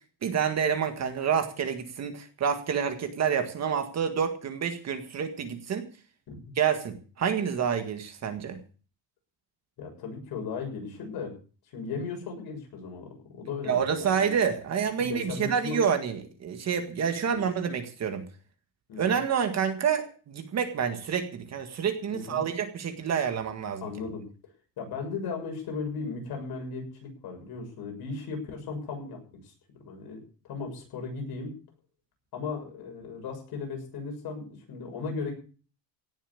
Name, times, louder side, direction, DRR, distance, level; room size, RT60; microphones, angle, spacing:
voice 1, 0.2-5.9 6.6-8.6 13.7-18.2 19.0-23.9, right 7 dB, 35° right, 7 dB, 1.8 m, -28 dB
voice 2, 9.8-11.3 11.7-14.3 15.0-15.8 18.9-19.2 22.1-22.4 23.8-24.2 24.8-29.5 29.8-30.2 30.4-31.6 32.3-35.3, left 4 dB, 50° left, 2 dB, 7.0 m, -36 dB
17.5 x 7.4 x 8.3 m, 0.39 s
cardioid pair, 165°, 46 cm